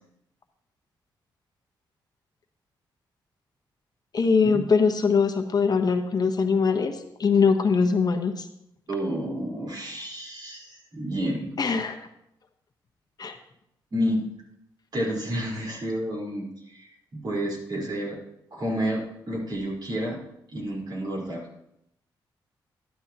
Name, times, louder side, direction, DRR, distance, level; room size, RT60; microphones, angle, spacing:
voice 1, 4.1-8.5 11.6-12.1 13.2-13.4, left 5 dB, 45° left, 6 dB, 1.1 m, -22 dB
voice 2, 8.9-11.5 13.9-14.3 14.9-18.2 18.5-20.2 20.5-21.5, equal, 50° right, -2 dB, 4.3 m, -30 dB
11.5 x 11.5 x 2.9 m, 0.80 s
supercardioid pair, 60°, 9 cm